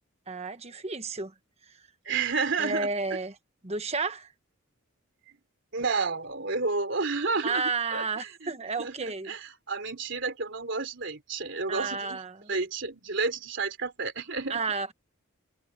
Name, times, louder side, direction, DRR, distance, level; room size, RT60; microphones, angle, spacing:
voice 1, 0.3-1.3 2.6-3.3 3.6-4.3 7.4-9.3 11.7-12.5 14.5-14.9, right 4 dB, 30° right, 1.2 m, -31 dB
voice 2, 2.1-2.9 5.7-12.2 12.5-14.6, right 4 dB, 60° right, 3.5 m, -31 dB
head